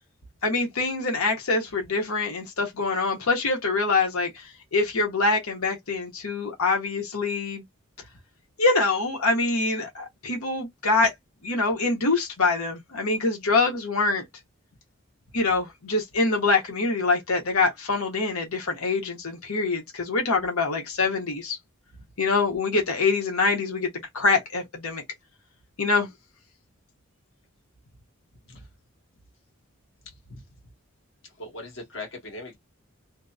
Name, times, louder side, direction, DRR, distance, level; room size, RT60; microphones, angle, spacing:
voice 1, 0.4-4.4 4.7-7.6 8.6-11.1 11.4-14.2 15.3-21.6 22.2-25.0 25.8-26.1, left 3 dB, 90° left, 0.9 m, -25 dB
voice 2, 30.0-30.4 31.2-32.6, left 2 dB, 60° left, 1.4 m, -40 dB
2.7 x 2.0 x 2.3 m
head